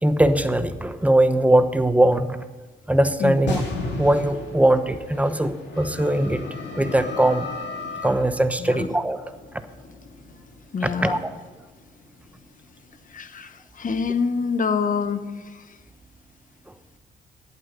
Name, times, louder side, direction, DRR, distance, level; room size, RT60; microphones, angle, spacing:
voice 1, 0.0-2.4 2.9-3.6 4.0-7.5 8.0-9.2 10.8-11.3 16.7-16.8, right 1 dB, 5° right, 10 dB, 0.9 m, -21 dB
sound 1, 3.5-13.1, left 2 dB, 60° left, 2.7 m, -34 dB
voice 2, 10.7-11.2 13.1-15.2 15.5-15.6, left 5 dB, 40° left, 11 dB, 1.1 m, -26 dB
11.5 x 8.7 x 6.7 m, 1.3 s
cardioid pair, 90°, 20 cm